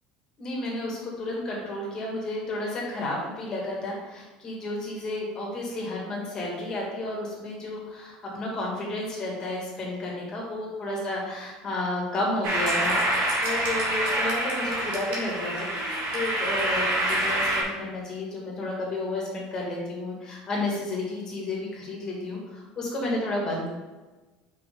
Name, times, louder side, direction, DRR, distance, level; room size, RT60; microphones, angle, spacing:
voice 1, 0.4-23.7, left 2 dB, 30° left, -2 dB, 1.9 m, -32 dB
sound 1, 12.4-17.6, right 1 dB, 60° right, 2.0 m, -26 dB
5.6 x 5.6 x 3.8 m, 1.2 s
cardioid pair, 155°, 2 cm